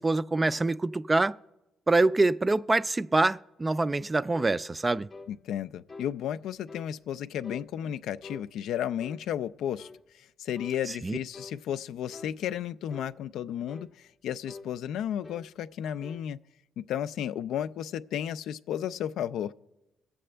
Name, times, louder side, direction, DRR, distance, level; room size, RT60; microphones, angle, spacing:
voice 1, 0.0-1.4 1.9-5.1 11.0-11.2, right 2 dB, 20° right, 0.3 m, -25 dB
sound 1, 4.3-4.6 5.1-5.3 5.9-6.1 6.7-6.9 7.4-7.7 8.2-8.5 9.0-9.2 9.8-10.0 10.5-10.8 11.3-11.6 12.1-12.4 12.9-13.1 13.7-13.9 14.5-14.7 15.2-15.5 15.8-16.3, left 3 dB, 35° left, 0.6 m, -46 dB
voice 2, 5.3-9.9 10.1-16.4 16.8-19.5, left 10 dB, 80° left, 0.3 m, -33 dB
22.0 x 7.7 x 3.3 m
cardioid pair, 90°, 0 cm